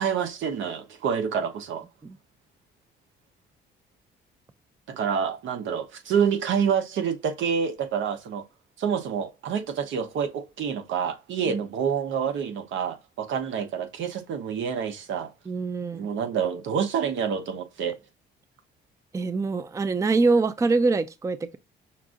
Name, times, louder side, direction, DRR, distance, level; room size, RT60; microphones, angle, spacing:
voice 1, 0.0-1.8 4.9-8.4 8.8-15.3 15.9-18.0, right 7 dB, 75° right, 0.9 m, -27 dB
voice 2, 15.5-16.1 19.1-21.6, right 3 dB, 15° right, 0.4 m, -24 dB
5.7 x 2.5 x 3.7 m
cardioid pair, 90°, 20 cm